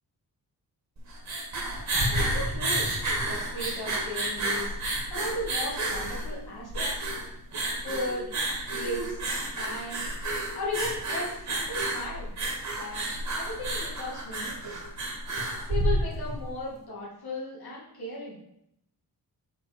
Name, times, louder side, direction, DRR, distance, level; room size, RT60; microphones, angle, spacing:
sound 1, 1.0-16.4, right 1 dB, 45° right, 2.0 m, -30 dB
voice 1, 2.1-2.9 3.3-7.1 7.8-8.3 8.7-9.2 9.6-10.0 10.5-12.3 12.8-13.1 13.3-14.8 15.7-18.4, left 2 dB, 75° left, -5 dB, 2.4 m, -36 dB
5.5 x 5.1 x 5.2 m, 0.77 s
wide cardioid pair, 150°, 38 cm